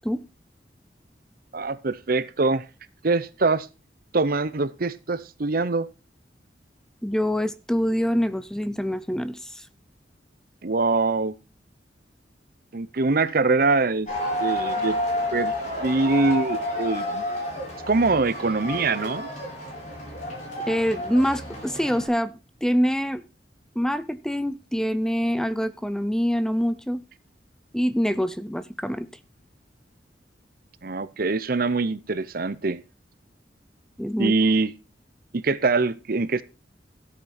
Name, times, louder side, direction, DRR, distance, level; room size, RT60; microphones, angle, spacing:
voice 1, 1.5-2.6 3.0-3.7 4.1-5.9 10.6-11.3 12.7-14.1 14.4-15.0 15.3-15.5 15.8-17.2 17.9-19.3 30.8-32.8 34.2-34.7 35.3-36.4, right 3 dB, 55° right, 0.8 m, -23 dB
voice 2, 7.0-9.7 20.7-22.3 22.6-23.2 23.8-27.0 27.7-29.1 34.0-34.3, equal, 5° left, 0.6 m, -25 dB
sound 1, 14.1-22.1, left 1 dB, 45° left, 5.8 m, -30 dB
13.5 x 8.5 x 4.3 m
head